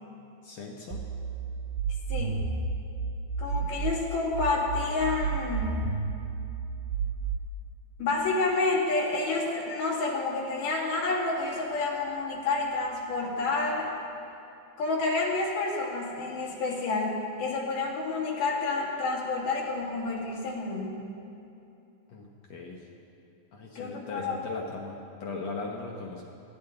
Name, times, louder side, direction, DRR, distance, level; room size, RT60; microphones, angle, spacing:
voice 1, 0.4-1.0 3.5-3.8 22.1-22.8 23.5-26.3, left 3 dB, 65° left, -1 dB, 1.7 m, -39 dB
sound 1, 0.9-3.9 4.3-7.4, right 5 dB, 80° right, 3.0 m, -31 dB
voice 2, 2.1-2.5 3.4-5.9 8.0-13.9 14.8-20.9 23.8-24.5, left 3 dB, 80° left, -4 dB, 4.1 m, -29 dB
21.0 x 15.0 x 3.9 m, 2.7 s
omnidirectional pair, 4.3 m